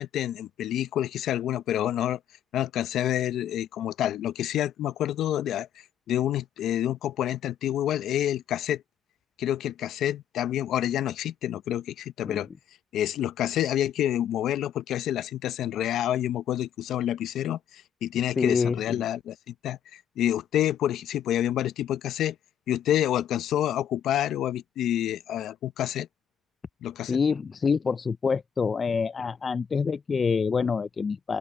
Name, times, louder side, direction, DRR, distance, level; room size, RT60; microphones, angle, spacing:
voice 1, 0.0-2.2 2.5-8.8 9.4-12.5 12.9-22.4 22.7-26.1 26.8-27.2, left 11 dB, 80° left, 0.7 m, -28 dB
voice 2, 18.4-19.0 27.1-31.4, left 5 dB, 40° left, 0.3 m, -26 dB
open air
cardioid pair, 90°, 0 cm